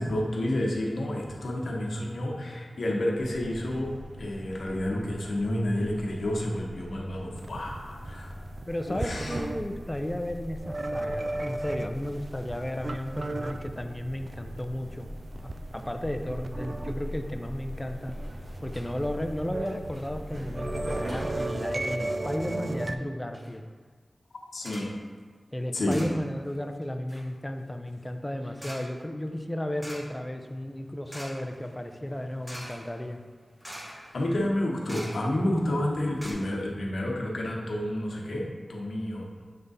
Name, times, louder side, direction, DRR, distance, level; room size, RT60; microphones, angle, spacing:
voice 1, 0.0-8.3 8.9-9.4 24.5-24.9 25.7-26.0 34.1-39.3, left 1 dB, 85° left, -1 dB, 0.9 m, -30 dB
sound 1, 3.2-21.3, equal, 70° right, 1.1 m, -41 dB
sound 2, 7.3-9.7 10.6-12.1 12.5-14.3 14.6-14.7 15.2-17.0 17.4-17.5 17.7-17.8 18.1-18.4 19.2-19.8 20.1-22.9, right 2 dB, 50° right, 0.3 m, -34 dB
voice 2, 8.7-15.1 15.7-18.2 18.6-23.7 25.5-33.2, left 1 dB, 20° left, 5 dB, 0.5 m, -34 dB
sound 3, 18.0-18.4 18.7-18.9 19.2-19.3 19.7-20.1 20.9-21.3 22.0-22.4 22.9-23.0 23.3-23.6 24.6-25.0 25.9-26.6 26.8-35.6 35.9-36.0 36.2-36.3, equal, 10° right, 1.3 m, -46 dB
6.6 x 3.5 x 4.1 m, 1.5 s
cardioid pair, 45°, 0 cm